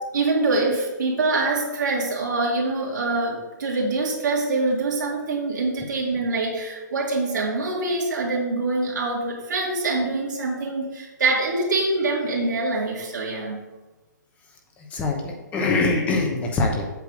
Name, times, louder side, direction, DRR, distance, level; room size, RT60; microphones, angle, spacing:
voice 1, 0.0-13.6, right 3 dB, 80° right, -4 dB, 2.2 m, -24 dB
voice 2, 14.9-16.9, left 3 dB, 15° left, 1 dB, 0.9 m, -23 dB
8.1 x 3.4 x 6.6 m, 1.1 s
hypercardioid pair, 155°, 10 cm